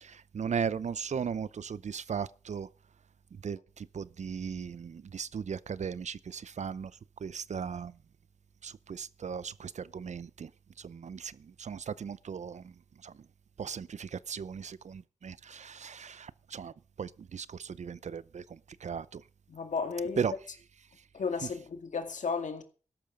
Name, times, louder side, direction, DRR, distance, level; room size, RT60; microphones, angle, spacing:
voice 1, 0.0-2.7 3.4-6.9 7.2-7.9 8.6-10.5 10.8-12.6 13.0-13.1 13.6-16.7 17.0-18.4 18.8-19.2 20.2-20.3, right 6 dB, 65° right, 0.6 m, -37 dB
voice 2, 19.5-20.2 21.1-22.6, left 5 dB, 75° left, 2.3 m, -34 dB
13.5 x 12.0 x 5.2 m
wide cardioid pair, 100°, 13 cm